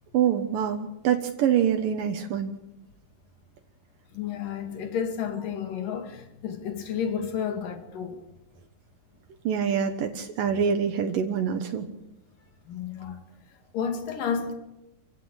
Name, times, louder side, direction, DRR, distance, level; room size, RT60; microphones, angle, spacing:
voice 1, 0.1-2.6 9.4-11.9, right 8 dB, 75° right, 2.8 m, -25 dB
voice 2, 4.1-8.2 12.7-13.2 13.7-14.5, left 7 dB, 70° left, 3.7 m, -31 dB
27.0 x 16.0 x 8.1 m
omnidirectional pair, 4.1 m